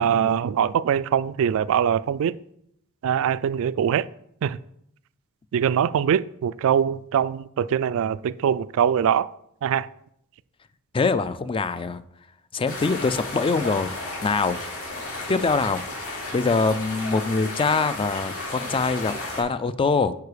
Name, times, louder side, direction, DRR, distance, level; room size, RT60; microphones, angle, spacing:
voice 1, 0.0-2.4 3.0-4.1 4.4-4.6 5.5-9.3 9.6-9.9, right 8 dB, 65° right, 0.3 m, -22 dB
voice 2, 10.9-12.0 12.5-13.9 14.2-14.6 15.3-20.2, left 4 dB, 25° left, 0.3 m, -24 dB
sound 1, 12.7-19.4, left 2 dB, 70° left, 3.5 m, -33 dB
9.4 x 4.7 x 4.9 m
head